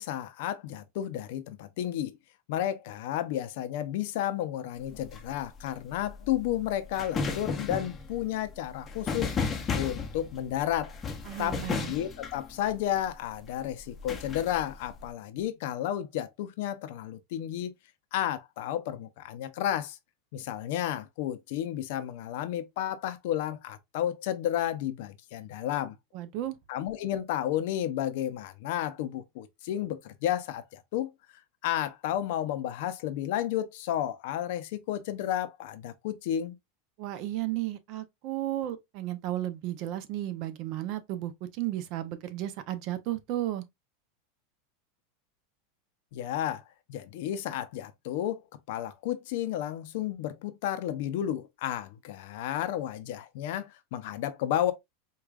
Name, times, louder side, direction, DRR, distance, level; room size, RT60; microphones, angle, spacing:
voice 1, 0.0-2.2 2.5-9.3 9.7-10.9 11.4-17.7 18.1-20.0 20.3-26.0 26.7-31.1 31.6-36.6 46.1-48.4 48.7-54.7, left 11 dB, 65° left, 0.6 m, -32 dB
sound 1, 4.8-13.1 13.8-15.1, left 5 dB, 20° left, 0.6 m, -34 dB
voice 2, 11.2-11.9 26.1-26.6 37.0-43.6, right 14 dB, 50° right, 0.6 m, -34 dB
4.7 x 2.4 x 2.3 m
supercardioid pair, 140°, 0 cm